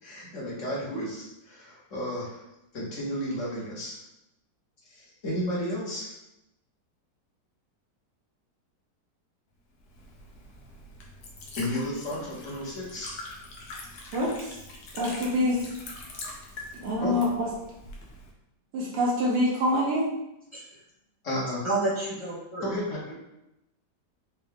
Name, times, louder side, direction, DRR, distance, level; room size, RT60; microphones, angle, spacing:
voice 1, 0.0-2.4 2.7-4.0 4.9-6.1 11.6-13.2 17.0-17.2 21.2-21.6 22.6-23.1, equal, 50° left, -5 dB, 1.5 m, -33 dB
Liquid, 9.8-18.3, left 2 dB, 70° left, 1.3 m, -44 dB
voice 2, 14.1-14.6 14.9-15.6 16.7-17.5 18.7-20.1, left 1 dB, 75° right, -5 dB, 1.4 m, -26 dB
voice 3, 21.6-22.7, right 2 dB, 20° left, -8 dB, 1.2 m, -29 dB
4.4 x 2.4 x 3.6 m, 0.88 s
omnidirectional pair, 1.9 m